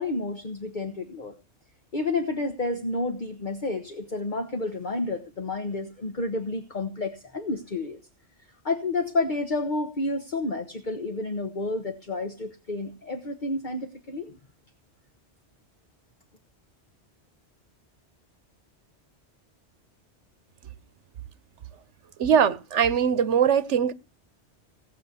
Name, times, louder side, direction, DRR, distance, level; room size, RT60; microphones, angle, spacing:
voice 1, 0.0-1.3 1.9-8.0 8.6-14.4, left 2 dB, 45° left, 1.4 m, -30 dB
voice 2, 22.2-23.9, right 8 dB, 90° right, 1.2 m, -21 dB
18.0 x 6.2 x 8.3 m
omnidirectional pair, 1.2 m